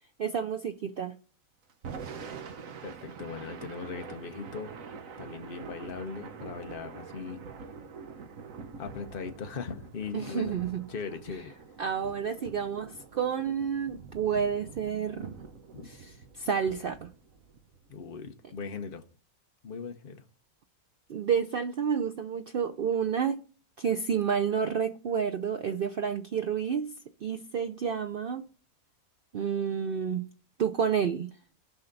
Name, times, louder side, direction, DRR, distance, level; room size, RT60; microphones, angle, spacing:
voice 1, 0.2-1.1 10.1-10.8 11.8-15.3 15.8-17.1 21.1-23.4 23.8-26.9 27.2-28.5 29.3-30.3 30.6-31.3, right 7 dB, 85° right, 0.4 m, -30 dB
Thunder / Rain, 1.7-17.9, right 5 dB, 65° right, 1.3 m, -45 dB
voice 2, 2.8-4.7 5.2-7.4 8.8-10.6 10.9-11.5 15.7-15.9 17.9-19.0 19.6-20.2, left 5 dB, 40° left, 1.0 m, -39 dB
16.5 x 5.7 x 4.0 m
omnidirectional pair, 1.6 m